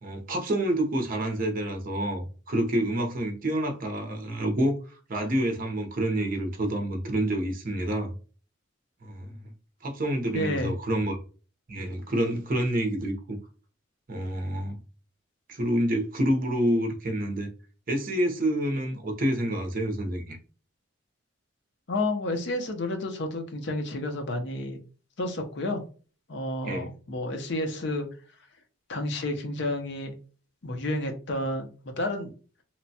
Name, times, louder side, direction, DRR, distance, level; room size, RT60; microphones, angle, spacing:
voice 1, 0.0-4.8 5.1-8.1 9.0-9.4 9.8-11.2 11.7-13.4 14.1-14.8 15.5-17.5 17.9-20.4 26.6-26.9, right 1 dB, 45° right, 5 dB, 0.7 m, -28 dB
voice 2, 10.3-10.7 21.9-24.8 25.2-25.8 26.3-28.1 28.9-30.1 30.6-32.3, left 1 dB, 60° left, 4 dB, 0.6 m, -30 dB
3.0 x 2.2 x 2.7 m, 0.37 s
head